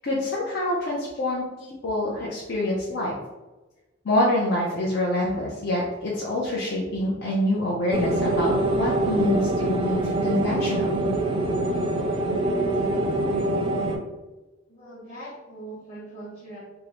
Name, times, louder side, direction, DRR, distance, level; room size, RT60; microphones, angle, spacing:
voice 1, 0.0-3.1 4.0-11.1, left 1 dB, 60° left, -5 dB, 0.5 m, -26 dB
sound 1, 7.9-14.0, right 2 dB, 25° right, 0.3 m, -24 dB
voice 2, 14.7-16.6, right 1 dB, 30° left, -11 dB, 1.0 m, -41 dB
3.5 x 2.0 x 2.9 m, 1.1 s
head